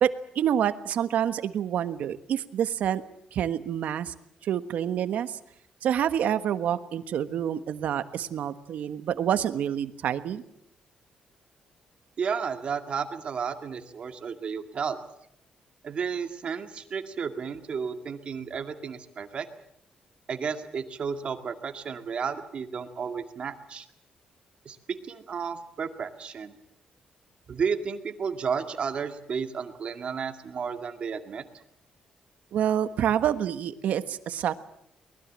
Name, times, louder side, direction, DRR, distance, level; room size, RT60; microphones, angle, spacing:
voice 1, 0.0-3.0 3.3-4.1 4.4-5.4 5.8-10.4 32.5-34.6, right 9 dB, 70° right, 11 dB, 1.4 m, -27 dB
voice 2, 12.2-15.0 15.8-19.5 20.3-23.9 24.7-24.8 25.1-26.5 27.5-31.4, right 6 dB, 45° right, 7 dB, 2.0 m, -32 dB
23.5 x 20.5 x 7.5 m, 0.74 s
cardioid pair, 150°, 3 cm